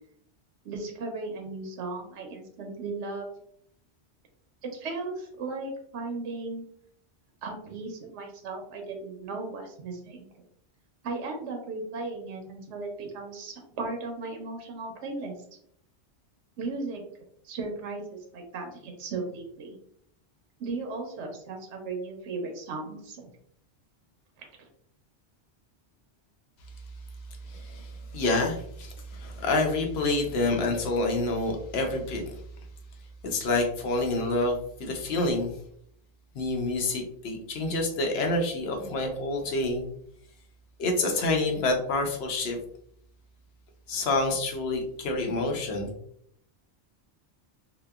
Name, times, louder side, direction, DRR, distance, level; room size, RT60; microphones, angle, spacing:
voice 1, 0.6-3.3 4.6-6.6 7.4-10.3 11.0-15.3 16.6-17.0 17.4-19.8 20.6-23.3 24.4-24.7, right 3 dB, 85° right, 3 dB, 0.9 m, -36 dB
voice 2, 27.5-32.4 33.2-35.5 36.3-39.9 40.8-42.6 43.9-45.9, left 2 dB, 70° left, 3 dB, 0.8 m, -28 dB
2.8 x 2.1 x 2.2 m, 0.68 s
omnidirectional pair, 1.2 m